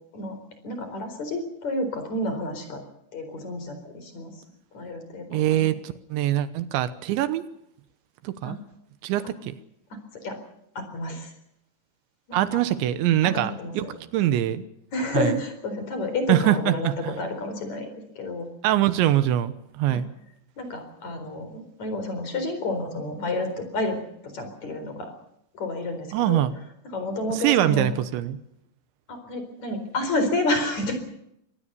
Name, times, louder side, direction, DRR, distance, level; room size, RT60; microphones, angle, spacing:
voice 1, 0.6-2.8 3.1-4.4 4.7-5.6 8.4-8.5 9.9-10.4 10.8-11.3 12.3-12.6 13.2-13.9 14.9-17.9 18.2-18.5 19.9-20.0 20.6-24.0 24.2-25.1 25.5-26.4 26.9-27.9 29.1-30.9, left 2 dB, 40° left, 7 dB, 5.2 m, -30 dB
voice 2, 5.3-7.5 8.2-8.6 9.0-9.5 12.3-13.9 14.1-14.7 15.1-15.4 16.3-17.2 18.6-20.1 26.1-26.5 27.3-28.4, right 12 dB, 80° right, 13 dB, 3.3 m, -23 dB
24.0 x 19.0 x 6.9 m, 0.77 s
omnidirectional pair, 5.3 m